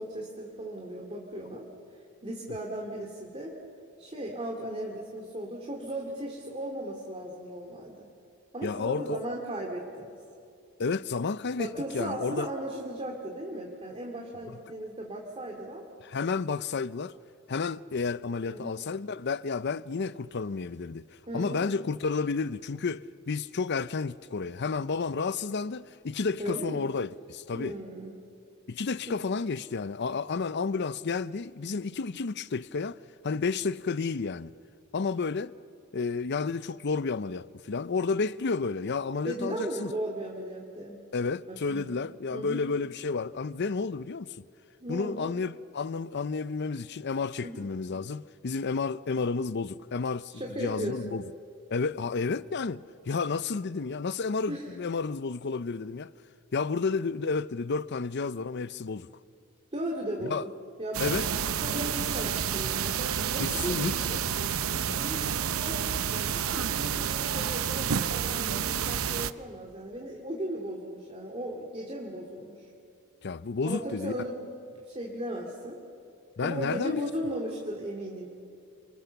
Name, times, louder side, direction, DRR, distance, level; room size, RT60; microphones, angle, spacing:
voice 1, 0.0-1.7 2.2-3.5 4.0-8.1 8.5-10.2 11.6-15.8 18.5-18.8 21.3-21.7 26.4-26.9 27.5-28.2 29.1-29.2 39.2-41.0 41.5-42.0 42.3-42.6 44.8-45.3 47.4-47.6 50.3-51.2 54.5-54.8 59.7-60.4 60.8-61.2 61.6-64.0 64.7-72.7 73.6-74.5 74.9-75.8 76.4-78.3, right 1 dB, 30° right, 2.6 m, -37 dB
voice 2, 8.6-9.2 10.8-12.5 16.0-17.1 17.5-21.0 21.3-27.7 28.7-33.0 33.2-34.5 34.9-35.5 35.9-39.9 41.1-44.3 44.9-50.3 50.6-51.2 51.7-56.1 56.5-59.1 60.2-60.5 61.0-61.3 63.4-64.3 64.9-65.0 73.2-74.2 76.4-77.1, left 4 dB, 55° left, 0.6 m, -31 dB
sound 1, 60.9-69.3, right 8 dB, 80° right, 0.7 m, -29 dB
29.0 x 25.0 x 7.0 m
head